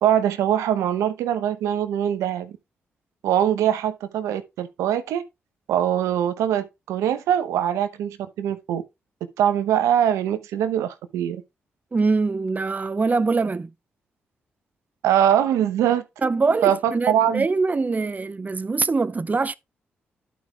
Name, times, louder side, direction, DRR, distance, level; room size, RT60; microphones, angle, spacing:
voice 1, 0.0-2.5 3.2-5.2 5.7-8.8 9.4-11.4 15.0-16.0 16.6-17.5, right 10 dB, 85° right, 0.9 m, -22 dB
voice 2, 11.9-13.7 16.2-19.5, right 4 dB, 30° right, 0.6 m, -23 dB
11.5 x 5.2 x 3.4 m
supercardioid pair, 45°, 5 cm